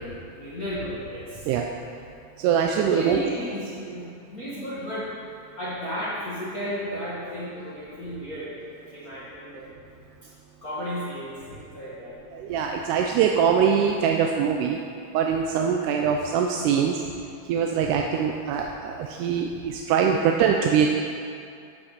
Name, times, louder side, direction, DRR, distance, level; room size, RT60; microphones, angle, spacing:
voice 1, 0.3-1.4 2.9-5.1 5.6-8.5 8.9-9.6 10.6-12.1 17.8-17.9 20.1-20.2, equal, 45° left, -10 dB, 1.2 m, -34 dB
voice 2, 2.4-3.2 3.9-4.0 12.3-14.8 15.1-17.0 17.4-20.9, right 7 dB, 80° right, 2 dB, 1.9 m, -23 dB
8.0 x 5.8 x 6.5 m, 2.5 s
omnidirectional pair, 3.8 m